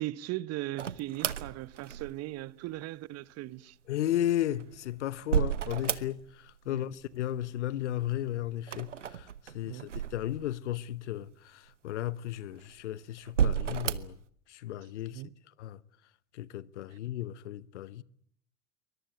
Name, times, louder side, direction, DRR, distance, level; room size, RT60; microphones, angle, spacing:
voice 1, 0.0-3.8 6.7-6.8 9.6-9.9 15.1-15.3 16.9-17.0, right 16 dB, 45° right, 1.0 m, -38 dB
sound 1, 0.8-2.4 4.3-6.5 6.7-7.5 8.6-10.7 11.3-11.4 12.2-12.8 13.3-14.2, right 8 dB, 90° right, 1.0 m, -32 dB
voice 2, 3.9-9.3 9.5-14.2 14.5-15.2 15.6-15.8 16.3-18.0, left 13 dB, 75° left, 1.0 m, -34 dB
23.5 x 21.5 x 8.2 m
hypercardioid pair, 80°, 35 cm